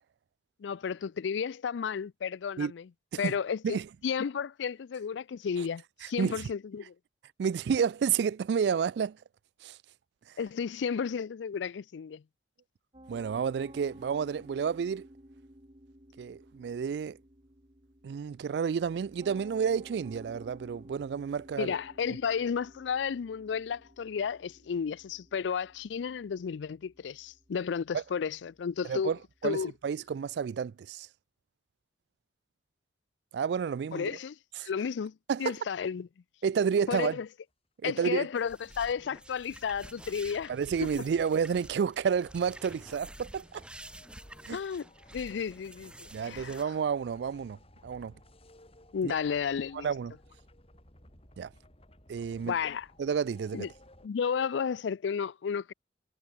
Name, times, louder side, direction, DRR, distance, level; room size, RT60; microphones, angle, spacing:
voice 1, 0.6-2.8 3.2-3.8 4.0-6.9 10.4-12.2 21.6-29.1 29.4-29.7 33.9-34.4 34.6-35.1 35.4-36.1 36.9-37.3 37.8-40.5 44.5-44.9 45.1-45.9 46.2-46.6 48.9-49.9 52.4-52.9 53.5-53.7 54.0-55.7, left 6 dB, 85° left, 0.4 m, -32 dB
voice 2, 7.4-9.2 9.6-9.8 13.1-15.1 16.2-17.2 18.0-21.7 27.9-28.0 28.8-29.2 29.4-31.1 33.3-34.2 34.6-34.7 35.3-35.6 36.4-37.2 37.8-38.3 40.5-43.6 44.5-44.6 46.1-47.6 47.8-48.1 49.0-49.1 49.7-50.1 51.4-51.5 52.1-52.5 53.0-53.7, right 6 dB, 65° right, 0.3 m, -30 dB
Piano, 12.9-30.1, right 1 dB, 30° right, 3.9 m, -55 dB
sound 1, 38.2-54.1, left 1 dB, 35° left, 7.1 m, -60 dB
sound 2, 38.4-46.6, right 1 dB, 5° right, 1.5 m, -49 dB
head